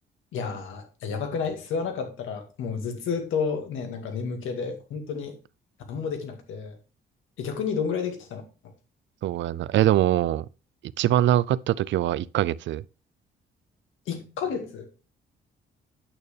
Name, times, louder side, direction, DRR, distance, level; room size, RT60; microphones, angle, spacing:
voice 1, 0.3-5.3 5.9-6.8 7.4-8.4 14.1-14.9, left 6 dB, 85° left, 2.1 m, -31 dB
voice 2, 9.2-10.5 11.0-12.8, right 13 dB, 70° right, 0.4 m, -23 dB
8.8 x 6.6 x 3.3 m
cardioid pair, 90°, 20 cm